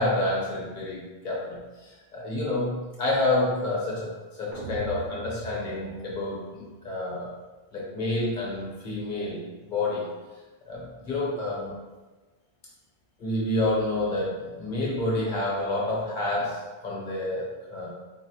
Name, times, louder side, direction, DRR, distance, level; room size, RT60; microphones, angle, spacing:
voice 1, 0.0-4.1 4.4-7.3 7.7-9.4 9.7-10.1 10.7-11.8 13.2-17.9, left 2 dB, 50° left, -5 dB, 0.9 m, -29 dB
sound 1, 4.5-6.8, right 3 dB, 55° right, 0.7 m, -40 dB
4.0 x 2.0 x 2.7 m, 1.2 s
omnidirectional pair, 1.1 m